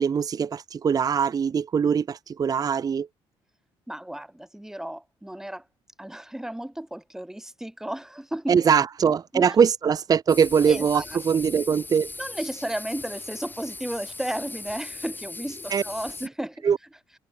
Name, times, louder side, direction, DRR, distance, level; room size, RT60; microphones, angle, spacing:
voice 1, 0.0-3.1 8.5-12.1 15.7-15.8 16.6-16.8, right 7 dB, 35° right, 0.9 m, -22 dB
voice 2, 3.9-5.7 6.0-8.6 9.3-9.6 10.6-11.2 12.2-16.7, right 1 dB, 5° right, 4.0 m, -34 dB
sound 1, 10.3-16.3, left 3 dB, 20° left, 4.2 m, -39 dB
cardioid pair, 100°, 10 cm